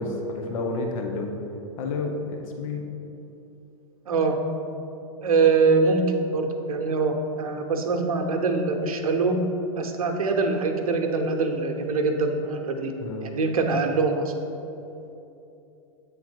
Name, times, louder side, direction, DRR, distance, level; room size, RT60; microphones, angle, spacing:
voice 1, 0.0-1.3 1.8-2.9 13.0-13.3, left 3 dB, 70° left, 2 dB, 0.8 m, -30 dB
voice 2, 4.1-4.4 5.2-6.0 6.3-9.4 9.8-12.9 13.2-14.3, right 4 dB, 85° right, 4 dB, 0.7 m, -23 dB
8.1 x 3.6 x 4.4 m, 2.9 s
hypercardioid pair, 115°, 18 cm